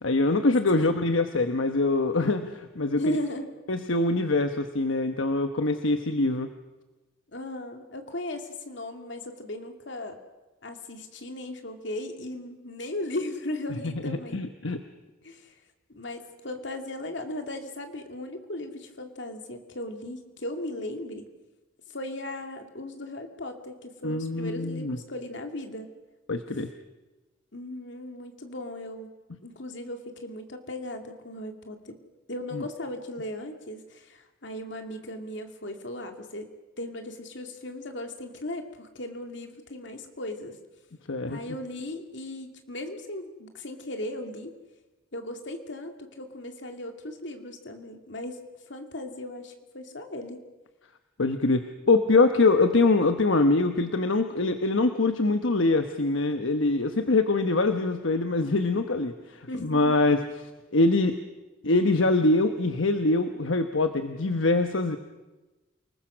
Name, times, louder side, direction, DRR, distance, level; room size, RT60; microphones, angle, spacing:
voice 1, 0.0-3.2 3.7-6.5 13.8-14.8 24.0-25.0 26.3-26.7 32.5-32.6 41.1-41.4 51.2-60.2 60.7-61.2 61.6-65.0, left 2 dB, 80° left, 7 dB, 1.1 m, -24 dB
voice 2, 3.0-3.5 7.3-10.2 10.6-14.4 15.2-15.5 15.9-21.3 21.9-25.9 27.5-29.1 29.4-32.0 32.3-36.5 36.8-40.6 41.3-44.5 45.1-48.4 48.7-50.4 59.5-60.2, left 1 dB, 65° left, 5 dB, 2.5 m, -37 dB
28.5 x 20.0 x 6.3 m, 1.1 s
head